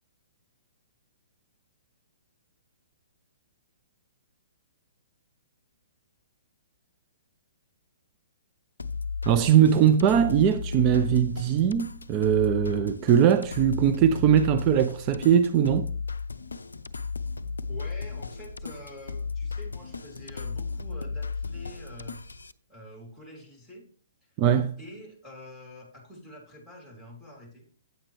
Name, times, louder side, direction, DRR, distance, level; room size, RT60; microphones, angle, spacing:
sound 1, 8.8-22.5, left 4 dB, 75° left, 0.4 m, -35 dB
voice 1, 9.3-15.9 24.4-24.7, right 9 dB, 30° right, 0.4 m, -21 dB
voice 2, 17.7-22.2 22.7-23.8 24.8-27.7, left 1 dB, 5° right, 3.0 m, -46 dB
9.0 x 7.3 x 3.2 m
figure-of-eight pair, 120°, 0 cm